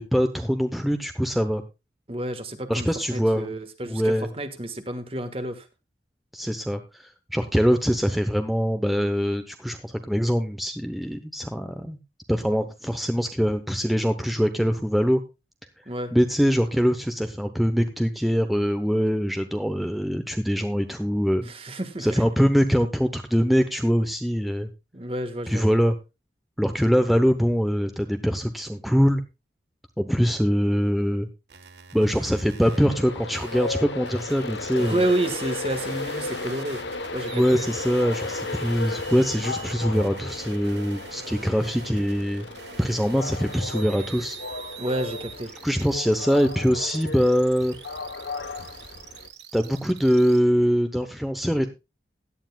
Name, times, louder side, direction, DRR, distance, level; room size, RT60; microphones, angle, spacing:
voice 1, 0.0-1.6 2.7-3.5 3.8-4.3 6.3-12.0 12.3-15.2 16.1-21.5 22.0-24.7 25.5-25.9 26.6-29.2 30.0-31.3 31.9-35.0 37.3-42.5 42.8-44.4 45.6-47.8 49.5-51.7, equal, ahead, 0.8 m, -23 dB
voice 2, 2.1-5.7 15.8-16.1 21.4-22.2 24.9-25.8 34.8-36.8 37.1-37.6 44.8-45.5, right 1 dB, 35° right, 1.5 m, -30 dB
sound 1, 31.5-32.9 33.3-50.4, right 7 dB, 75° right, 1.3 m, -44 dB
Train, 32.7-49.3, left 3 dB, 85° left, 1.1 m, -35 dB
17.0 x 11.5 x 2.3 m
head